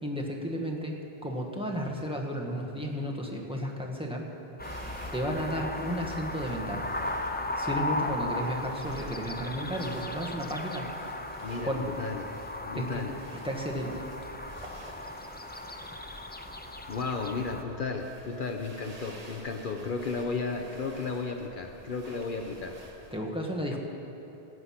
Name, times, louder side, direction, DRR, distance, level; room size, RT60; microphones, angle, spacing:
voice 1, 0.0-1.0 1.2-4.3 5.1-6.9 7.5-11.1 11.6-11.9 12.7-13.0 13.4-14.1 23.1-23.8, equal, 5° right, 0 dB, 1.2 m, -33 dB
sound 1, 4.6-17.6, left 1 dB, 15° left, 0.3 m, -36 dB
sound 2, 4.6-23.2, right 1 dB, 40° right, 1.3 m, -50 dB
voice 2, 11.4-12.2 12.6-13.1 16.9-22.8 23.7-23.8, left 4 dB, 60° left, 4 dB, 0.8 m, -34 dB
17.0 x 8.0 x 5.7 m, 3.0 s
omnidirectional pair, 1.0 m